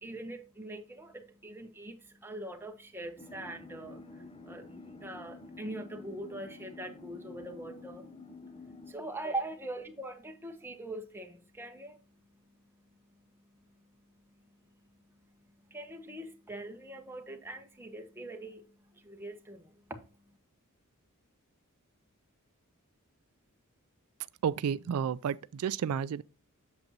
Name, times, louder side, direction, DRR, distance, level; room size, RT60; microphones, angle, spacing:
voice 1, 0.0-8.1 8.9-12.0 15.7-20.0, right 2 dB, 10° right, 1.1 m, -42 dB
sound 1, 3.2-8.9, left 3 dB, 25° left, 0.6 m, -49 dB
voice 2, 24.4-26.2, right 7 dB, 85° right, 0.3 m, -31 dB
8.0 x 7.0 x 2.8 m
head